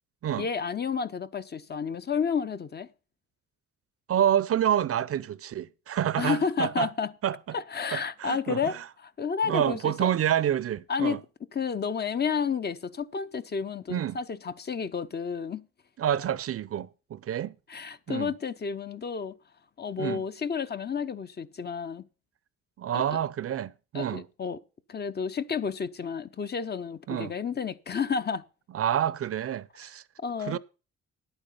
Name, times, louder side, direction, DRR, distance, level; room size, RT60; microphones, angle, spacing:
voice 1, 0.4-2.9 6.2-7.1 7.5-8.8 9.0-10.1 10.9-11.2 11.5-15.6 17.7-19.3 19.8-22.0 22.9-23.2 23.9-24.6 24.9-28.4 30.2-30.6, left 6 dB, 35° left, 0.7 m, -31 dB
voice 2, 4.1-6.9 7.2-7.6 7.9-8.8 9.5-11.2 13.9-14.2 16.0-17.5 18.1-18.3 20.0-20.2 22.8-24.2 27.1-27.3 28.7-30.0 30.5-30.6, right 10 dB, 50° right, 0.6 m, -28 dB
10.0 x 8.9 x 5.7 m
cardioid pair, 90°, 30 cm